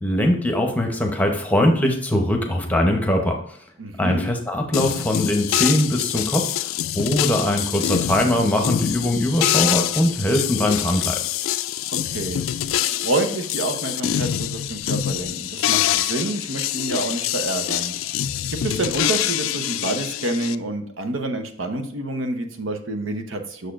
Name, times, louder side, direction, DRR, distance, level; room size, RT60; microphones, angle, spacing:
voice 1, 0.0-3.4 4.0-6.5 6.9-11.2, left 1 dB, 10° left, 2 dB, 0.8 m, -21 dB
voice 2, 3.8-4.2 12.1-12.4 12.9-18.0 18.5-23.7, right 2 dB, 80° right, 6 dB, 0.9 m, -28 dB
sound 1, 4.7-20.6, left 11 dB, 90° left, 0.3 m, -25 dB
6.6 x 6.4 x 2.5 m, 0.66 s
head